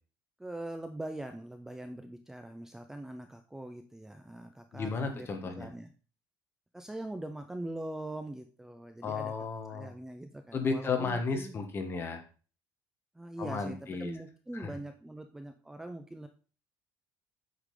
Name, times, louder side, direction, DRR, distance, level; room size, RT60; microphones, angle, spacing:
voice 1, 0.4-5.9 6.7-9.3 9.7-11.5 13.1-16.3, right 1 dB, 5° right, 6 dB, 0.5 m, -42 dB
voice 2, 4.7-5.7 9.0-9.9 10.5-12.2 13.4-14.1 14.5-14.7, left 4 dB, 30° left, 5 dB, 1.5 m, -33 dB
8.2 x 3.9 x 4.9 m, 0.38 s
cardioid pair, 145°, 8 cm